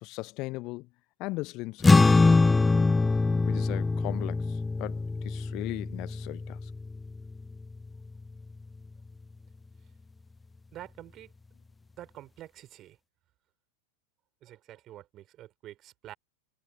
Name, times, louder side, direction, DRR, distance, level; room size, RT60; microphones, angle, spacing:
voice 1, 0.0-0.9 1.2-2.1 3.5-6.7, left 21 dB, 40° left, 1.0 m, -38 dB
sound 1, 1.8-8.5, left 3 dB, 10° left, 0.9 m, -24 dB
voice 2, 10.7-11.3 12.0-13.0 14.4-16.1, right 13 dB, 35° right, 5.3 m, -47 dB
figure-of-eight pair, 90°, 0 cm